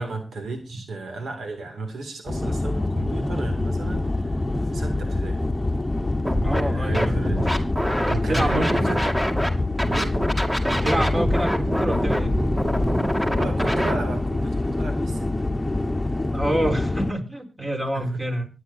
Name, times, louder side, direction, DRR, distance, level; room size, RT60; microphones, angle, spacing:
voice 1, 0.0-5.5 6.5-7.7 8.1-9.1 9.9-10.2 13.3-15.5 17.9-18.2, right 3 dB, 85° right, 2.4 m, -33 dB
sound 1, 2.3-17.1, left 2 dB, 20° left, 1.2 m, -26 dB
Scratching (performance technique), 6.2-6.6 6.9-9.5 9.8-14.0, equal, 10° right, 2.5 m, -25 dB
voice 2, 6.4-7.2 8.3-8.9 10.7-12.4 16.3-18.5, right 1 dB, 30° right, 4.2 m, -27 dB
25.0 x 9.8 x 2.7 m
cardioid pair, 70°, 0 cm